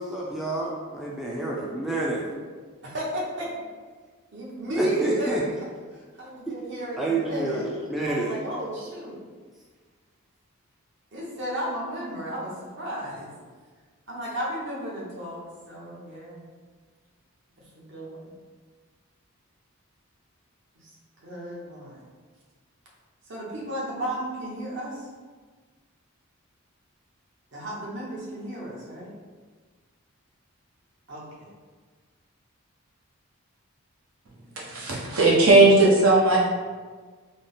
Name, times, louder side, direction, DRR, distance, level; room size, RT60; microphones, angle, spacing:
voice 1, 0.0-2.3 4.8-5.4 7.0-8.4, right 2 dB, ahead, -5 dB, 0.3 m, -29 dB
voice 2, 2.8-3.5 4.3-5.4 5.9-7.6 8.1-9.2 11.1-13.3 14.1-15.4 15.7-16.4 17.7-18.2 20.8-20.9 21.2-22.0 23.3-25.0 27.5-29.1 31.1-31.5, right 1 dB, 55° right, -5 dB, 0.9 m, -33 dB
voice 3, 34.7-36.4, right 2 dB, 80° right, -5 dB, 0.9 m, -17 dB
3.7 x 2.0 x 3.8 m, 1.5 s
head